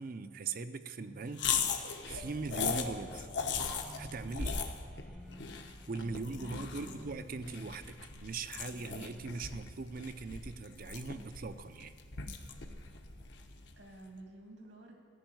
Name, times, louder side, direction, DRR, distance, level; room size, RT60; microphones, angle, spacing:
voice 1, 0.0-1.7 2.0-3.3 3.9-4.6 5.9-11.9, right 4 dB, 50° right, 11 dB, 0.5 m, -40 dB
sound 1, 1.0-2.1 3.6-10.1, equal, ahead, 0.6 m, -55 dB
sound 2, 1.3-13.8, left 6 dB, 65° left, 1.0 m, -39 dB
voice 2, 6.0-7.1 13.8-14.9, right 1 dB, 85° right, 1 dB, 2.4 m, -51 dB
15.0 x 5.3 x 9.1 m, 2.4 s
head